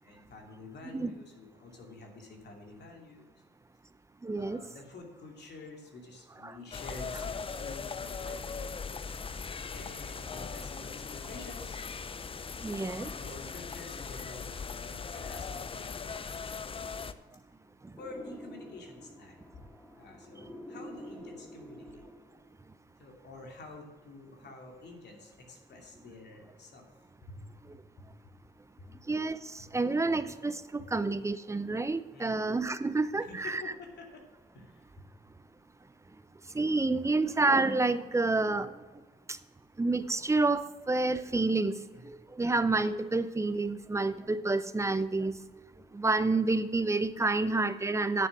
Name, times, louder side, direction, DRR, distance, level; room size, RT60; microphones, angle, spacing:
voice 1, 0.0-3.3 4.3-8.8 9.7-11.8 13.1-16.4 18.0-19.6 19.9-22.1 23.0-26.9 27.2-28.1 28.8-29.0 29.6-29.7 32.1-32.4 33.2-34.3 34.5-35.3 41.9-42.0, left 2 dB, 60° left, 2 dB, 2.6 m, -49 dB
voice 2, 4.2-4.6 6.4-6.5 12.6-13.1 29.1-29.4 29.7-33.6 36.5-38.7 39.8-41.8 42.0-45.3 45.9-48.3, right 3 dB, 15° right, 13 dB, 0.6 m, -29 dB
sound 1, 6.7-17.1, left 5 dB, 25° left, 0.5 m, -39 dB
sound 2, 18.0-22.6, equal, 10° left, 1.3 m, -48 dB
9.3 x 7.2 x 6.0 m, 1.3 s
cardioid pair, 90°, 20 cm